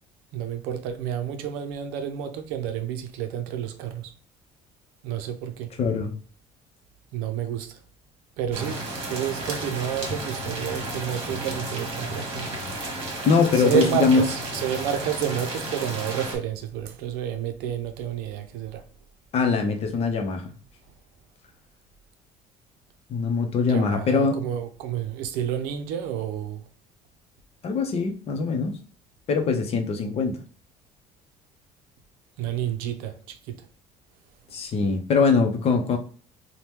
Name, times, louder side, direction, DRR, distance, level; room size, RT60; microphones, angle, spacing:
voice 1, 0.3-4.1 5.0-5.7 7.1-7.8 8.4-12.5 13.5-18.9 23.7-26.7 32.4-33.7, right 9 dB, 90° right, 0.5 m, -30 dB
voice 2, 5.8-6.1 13.3-14.2 19.3-20.5 23.1-24.4 27.6-28.8 29.3-30.4 34.5-36.0, left 4 dB, 45° left, 0.7 m, -22 dB
sound 1, 8.5-16.4, right 1 dB, 40° right, 1.2 m, -33 dB
2.8 x 2.2 x 3.4 m
cardioid pair, 120°, 15 cm